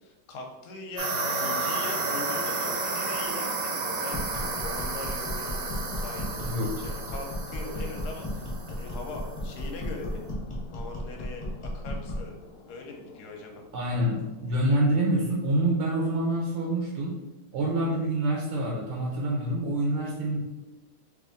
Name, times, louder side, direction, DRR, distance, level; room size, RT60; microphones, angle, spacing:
voice 1, 0.0-10.2 10.7-12.3 12.7-13.6, left 3 dB, 65° left, 2 dB, 1.0 m, -41 dB
sound 1, 1.0-9.2, right 4 dB, 70° right, 1.4 m, -32 dB
sound 2, 1.1-15.1, left 4 dB, 90° left, 1.5 m, -44 dB
sound 3, 4.1-12.3, left 1 dB, 25° left, 0.7 m, -35 dB
voice 2, 6.4-6.8 13.7-17.2 17.5-20.4, right 1 dB, 85° right, -1 dB, 1.6 m, -26 dB
3.3 x 3.1 x 3.7 m, 1.1 s
omnidirectional pair, 2.4 m